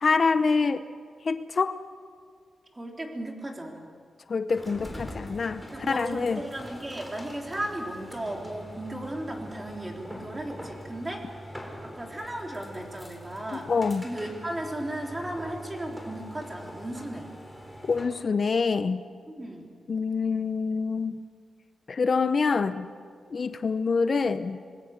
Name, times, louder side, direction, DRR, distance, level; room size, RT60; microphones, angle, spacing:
voice 1, 0.0-0.9 1.2-1.8 4.3-6.4 13.7-14.1 17.8-19.0 19.9-21.2 21.9-22.9 23.3-24.6, left 4 dB, 45° left, 11 dB, 0.7 m, -26 dB
voice 2, 2.7-3.9 5.6-13.7 14.0-17.3 19.3-19.7, right 1 dB, 20° right, 1 dB, 3.6 m, -36 dB
sound 1, 4.5-18.2, equal, ahead, 3.7 m, -43 dB
26.5 x 21.0 x 6.6 m, 2.1 s
wide cardioid pair, 115°, 0 cm